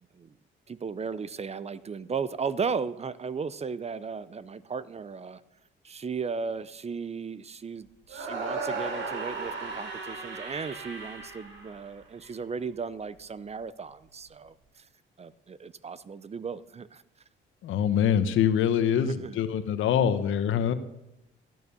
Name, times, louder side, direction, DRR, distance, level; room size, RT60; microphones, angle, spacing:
voice 1, 0.7-5.4 5.8-14.8 15.2-17.0 18.9-19.4, right 5 dB, 30° right, 17 dB, 0.7 m, -35 dB
sound 1, 8.1-12.3, right 3 dB, 70° right, 3.4 m, -36 dB
voice 2, 17.6-20.7, left 9 dB, 80° left, 11 dB, 1.2 m, -24 dB
15.0 x 9.3 x 7.0 m, 0.91 s
cardioid pair, 90°, 20 cm